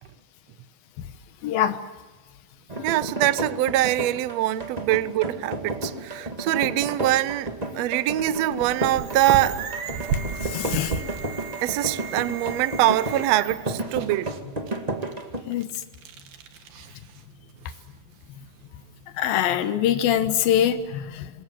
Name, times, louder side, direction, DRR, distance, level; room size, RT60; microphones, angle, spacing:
voice 1, 1.4-1.8 10.4-11.0 15.5-15.7 19.2-21.3, left 10 dB, 90° left, 3.0 m, -23 dB
sound 1, 2.7-15.4, right 2 dB, 15° right, 1.3 m, -32 dB
voice 2, 2.8-9.6 11.6-14.3, right 14 dB, 75° right, 1.6 m, -23 dB
sound 2, 4.2-19.5, right 5 dB, 90° right, 3.6 m, -39 dB
sound 3, 8.5-13.8, right 7 dB, 55° right, 2.5 m, -38 dB
27.5 x 22.0 x 7.6 m
omnidirectional pair, 4.0 m